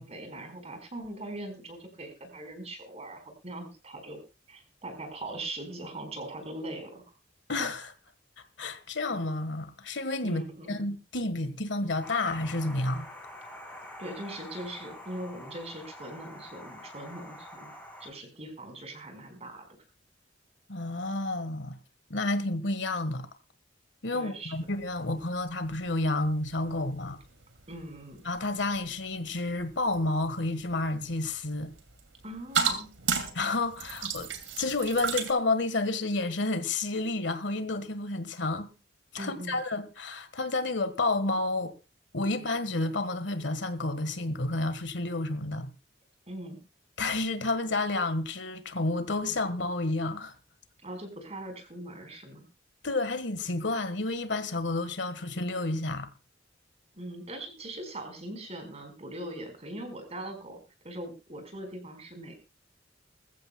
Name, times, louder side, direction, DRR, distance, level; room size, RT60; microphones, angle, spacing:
voice 1, 0.0-4.2 4.5-7.0 10.2-10.8 14.0-17.7 18.0-19.6 24.1-24.5 27.7-28.2 32.2-32.9 39.1-39.6 46.3-46.6 50.8-52.5 56.9-60.6 60.8-62.3, right 1 dB, 35° right, 4.7 m, -41 dB
voice 2, 7.5-7.9 8.6-10.4 10.7-13.1 20.7-21.8 22.1-23.3 24.0-27.2 28.2-31.7 33.3-34.3 34.6-38.7 39.1-41.7 42.1-45.7 47.0-50.3 52.8-56.1, left 2 dB, 70° left, 1.5 m, -30 dB
sound 1, 12.0-18.1, left 1 dB, 10° left, 5.8 m, -46 dB
sound 2, 24.5-35.3, right 6 dB, 85° right, 2.6 m, -37 dB
21.5 x 14.5 x 2.3 m
head